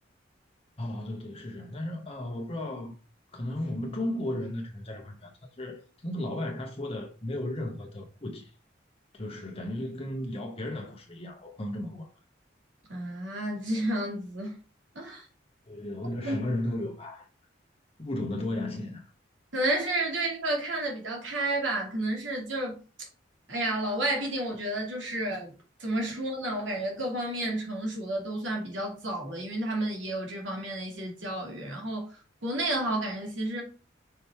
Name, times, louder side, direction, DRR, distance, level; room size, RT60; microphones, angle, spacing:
voice 1, 0.8-3.0 3.3-8.5 9.1-12.1 15.7-17.3 18.0-19.1, left 1 dB, 30° left, 1.0 m, -35 dB
voice 2, 12.9-14.6 14.9-15.3 16.2-16.4 19.5-22.8 23.5-25.5 25.8-33.6, right 1 dB, 90° right, 2.8 m, -31 dB
5.7 x 5.2 x 4.5 m
head